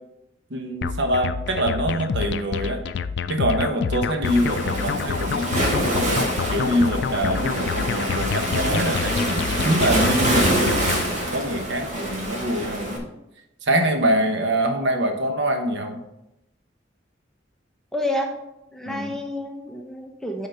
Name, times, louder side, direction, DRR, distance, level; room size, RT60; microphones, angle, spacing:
voice 1, 0.5-2.8 3.3-10.9 11.3-13.1 13.6-16.0 18.9-19.2, right 1 dB, 65° right, 4 dB, 1.0 m, -24 dB
sound 1, 0.8-11.1, left 6 dB, 60° left, 0.3 m, -28 dB
Waves surf, 4.2-13.0, right 1 dB, 40° right, 1.3 m, -25 dB
voice 2, 17.9-18.4 18.7-20.5, left 1 dB, 5° left, 2 dB, 0.8 m, -29 dB
9.0 x 3.8 x 5.5 m, 0.90 s
head